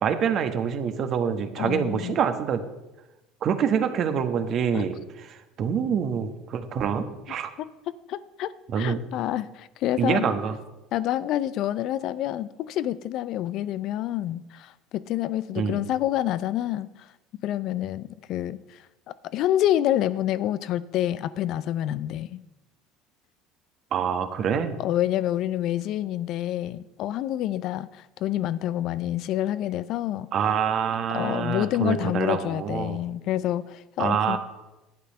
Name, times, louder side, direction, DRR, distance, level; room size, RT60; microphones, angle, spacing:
voice 1, 0.0-2.6 3.4-7.5 8.7-9.0 10.0-10.6 15.5-15.8 23.9-24.8 30.3-33.0 34.0-34.4, right 7 dB, 50° right, 8 dB, 1.3 m, -26 dB
voice 2, 1.6-2.2 4.7-4.8 7.6-10.4 10.9-17.1 17.4-22.4 24.8-30.3 31.1-34.4, left 12 dB, 60° left, 16 dB, 0.5 m, -28 dB
11.0 x 8.4 x 5.5 m, 1.0 s
hypercardioid pair, 75°, 0 cm